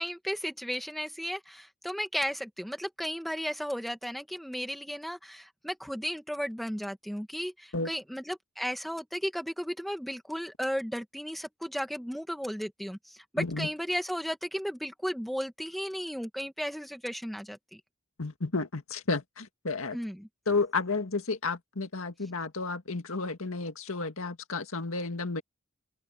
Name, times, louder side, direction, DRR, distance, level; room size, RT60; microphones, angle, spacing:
voice 1, 0.0-17.8 19.9-20.3, equal, ahead, 1.6 m, -34 dB
voice 2, 13.4-13.7 18.2-20.0 20.5-25.4, left 3 dB, 80° left, 1.9 m, -32 dB
open air
head